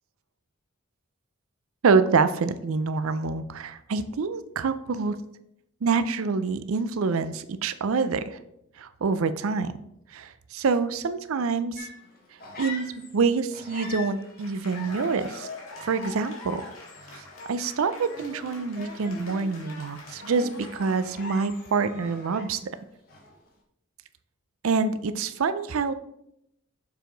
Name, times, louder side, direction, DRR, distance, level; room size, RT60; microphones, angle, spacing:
voice 1, 1.8-5.2 5.8-8.4 8.8-9.7 10.1-11.9 12.6-15.5 15.8-16.6 17.1-22.6 24.6-25.9, right 4 dB, 75° right, 13 dB, 0.5 m, -26 dB
sound 1, 11.8-13.2 13.5-22.8 23.1-23.5, left 3 dB, 45° left, 1.2 m, -43 dB
Cheering / Applause, 14.1-21.7, left 3 dB, 70° left, 1.8 m, -44 dB
6.8 x 4.7 x 3.9 m, 0.79 s
head